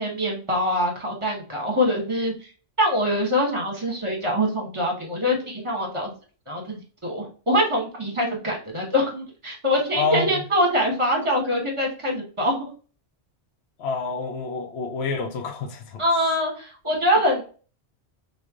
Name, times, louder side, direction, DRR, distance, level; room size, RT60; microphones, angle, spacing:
voice 1, 0.0-2.3 2.8-6.1 6.5-12.7 16.0-17.4, equal, 30° right, 1.1 m, -24 dB
voice 2, 9.9-10.4 13.8-16.0, left 4 dB, 75° left, 0.8 m, -28 dB
3.1 x 2.4 x 3.6 m
omnidirectional pair, 1.1 m